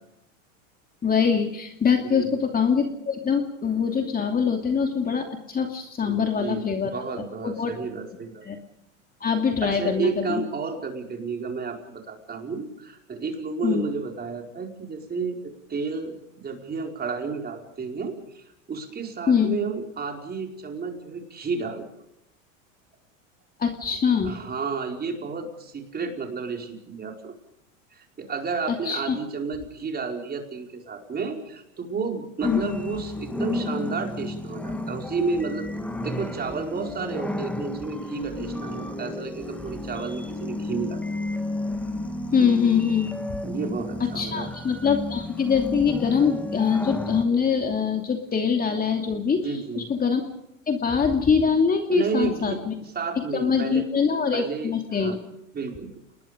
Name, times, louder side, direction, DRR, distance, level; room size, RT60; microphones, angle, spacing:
voice 1, 1.0-7.0 7.4-7.7 8.4-8.6 9.2-10.4 13.6-13.9 19.3-19.6 23.6-24.3 28.7-29.2 32.4-32.6 42.3-43.1 44.1-49.5 49.8-50.2 50.7-52.7 53.2-55.2, left 6 dB, 20° left, 4 dB, 2.7 m, -23 dB
voice 2, 2.0-2.4 6.0-8.4 9.6-21.9 24.2-27.3 27.9-35.7 36.0-41.0 43.4-44.5 49.4-49.8 51.9-55.2 55.5-55.9, right 4 dB, 25° right, 2 dB, 5.0 m, -32 dB
sound 1, 32.4-47.2, left 2 dB, 5° left, 1.9 m, -32 dB
29.5 x 20.5 x 5.2 m, 0.81 s
hypercardioid pair, 110°, 40 cm